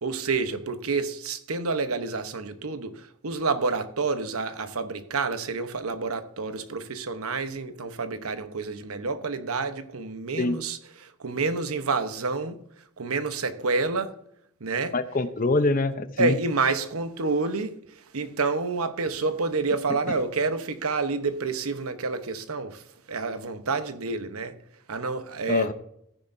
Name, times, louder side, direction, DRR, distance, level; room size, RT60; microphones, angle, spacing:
voice 1, 0.0-12.6 13.0-14.1 14.6-14.9 16.2-17.8 18.1-22.8 23.1-24.6 24.9-25.7, right 4 dB, 85° right, 0.9 m, -28 dB
voice 2, 14.9-16.3 20.1-20.2 25.5-25.7, left 2 dB, 40° left, 0.7 m, -24 dB
14.5 x 10.0 x 2.6 m
head